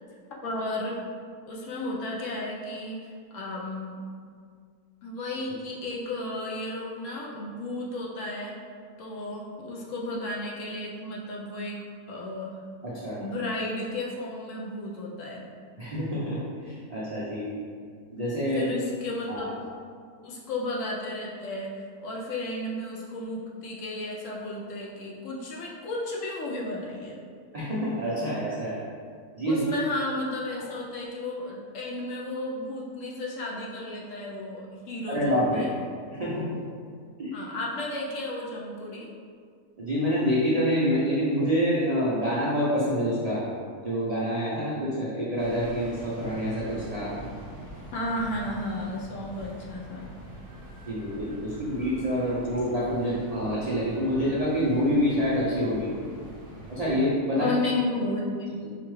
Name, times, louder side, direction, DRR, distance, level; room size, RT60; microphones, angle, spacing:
voice 1, 0.4-1.0 1.5-4.0 5.0-8.6 9.0-11.8 12.1-12.5 13.2-15.4 18.5-19.7 20.2-27.1 29.5-35.7 37.3-39.1 47.9-50.1 57.4-58.6, left 2 dB, 70° left, -3 dB, 0.8 m, -33 dB
voice 2, 12.8-13.2 15.8-17.6 18.1-18.7 19.3-19.5 27.5-28.8 29.4-29.6 30.6-30.7 35.1-35.7 36.1-36.6 37.2-37.4 39.8-43.4 43.8-47.1 50.9-55.9 56.7-57.5 58.6-58.7, equal, 90° right, -8 dB, 0.3 m, -27 dB
sound 1, 45.4-57.1, equal, 45° right, 0.8 m, -44 dB
4.6 x 2.3 x 3.0 m, 2.1 s
omnidirectional pair, 1.6 m